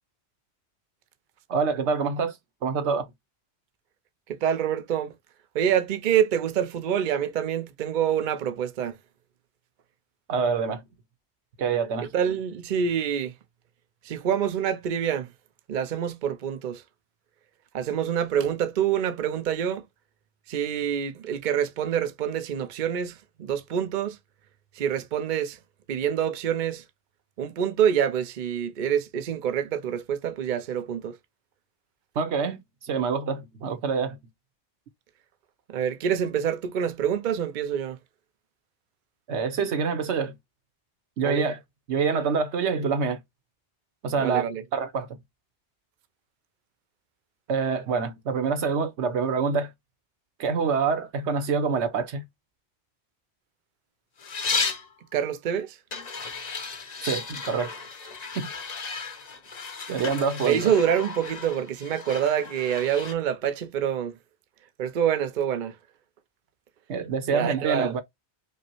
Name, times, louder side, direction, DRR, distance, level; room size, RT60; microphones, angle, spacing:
voice 1, 1.5-2.3 2.6-3.1 10.3-10.8 11.6-12.1 32.2-32.6 32.8-34.2 39.3-40.3 41.2-41.6 41.9-43.2 44.0-44.4 44.7-45.1 47.5-49.7 50.4-52.2 57.0-57.7 58.3-58.4 59.9-60.7 66.9-68.0, right 5 dB, 90° right, 1.1 m, -26 dB
voice 2, 4.3-5.1 5.5-9.0 12.1-13.3 14.0-15.3 15.7-16.8 17.7-19.8 20.5-24.2 24.8-25.6 25.9-26.8 27.4-31.2 35.7-38.0 41.2-41.5 44.2-44.6 55.1-55.8 60.4-64.2 64.8-65.7 67.3-67.9, right 9 dB, 50° right, 0.7 m, -26 dB
sound 1, 54.2-54.9 55.9-63.1, left 4 dB, 45° left, 0.8 m, -34 dB
5.3 x 2.1 x 2.9 m
omnidirectional pair, 1.1 m